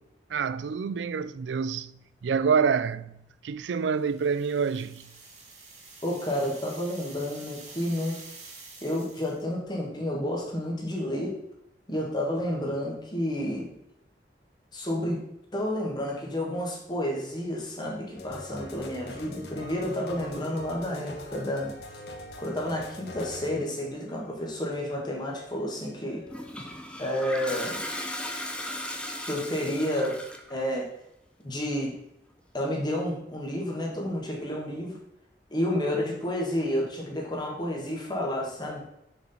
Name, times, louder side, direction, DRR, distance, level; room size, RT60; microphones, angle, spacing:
voice 1, 0.3-1.9 2.2-5.1, right 6 dB, 90° right, 0.4 m, -27 dB
sound 1, 3.9-9.5, right 3 dB, 40° right, 1.8 m, -48 dB
voice 2, 6.0-8.2 8.8-11.4 11.9-13.7 14.7-15.2 15.5-21.7 22.4-26.2 27.0-27.8 29.2-30.2 30.5-30.9 31.4-32.0 32.5-35.0 35.5-38.8, left 1 dB, 25° left, 1.8 m, -30 dB
sound 2, 18.1-26.7, left 2 dB, 70° left, 1.1 m, -44 dB
Toilet flush, 26.3-30.6, left 1 dB, 5° left, 0.7 m, -36 dB
6.4 x 5.0 x 5.6 m
head